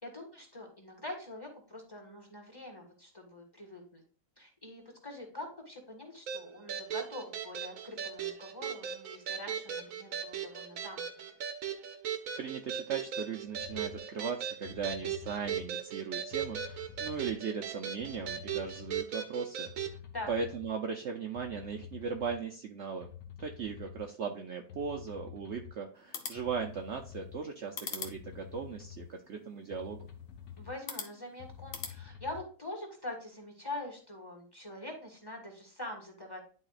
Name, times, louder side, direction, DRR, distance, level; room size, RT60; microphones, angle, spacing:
voice 1, 0.0-4.0 4.4-11.0 20.1-20.3 30.6-36.4, left 2 dB, 15° left, 0 dB, 1.5 m, -44 dB
sound 1, 6.3-20.0, right 8 dB, 60° right, 1.0 m, -38 dB
voice 2, 12.4-19.9 20.3-23.1 23.4-30.1, right 6 dB, 75° right, 3 dB, 0.6 m, -38 dB
sound 2, 13.5-14.0 14.6-15.7 16.3-17.3 18.0-19.0 19.7-20.7 21.3-22.4 23.0-24.0 24.7-25.7 26.4-27.4 28.0-29.1 29.7-30.7 31.4-32.4, left 9 dB, 70° left, 1.6 m, -48 dB
sound 3, 26.0-32.0, left 5 dB, 50° left, 0.9 m, -46 dB
11.0 x 4.0 x 2.4 m, 0.42 s
omnidirectional pair, 1.9 m